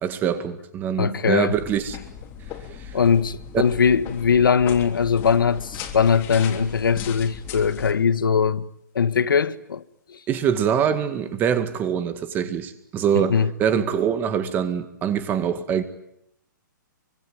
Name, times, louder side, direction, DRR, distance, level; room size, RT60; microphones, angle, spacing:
voice 1, 0.0-2.0 2.8-2.9 10.3-15.8, right 8 dB, 15° right, 2.0 m, -24 dB
voice 2, 1.0-1.5 2.9-8.7 9.0-9.8 10.1-10.2 13.1-13.5, left 6 dB, 90° left, 1.6 m, -20 dB
sound 1, 1.5-7.9, left 8 dB, 20° left, 3.2 m, -38 dB
25.5 x 25.0 x 9.3 m
hypercardioid pair, 160°, 11 cm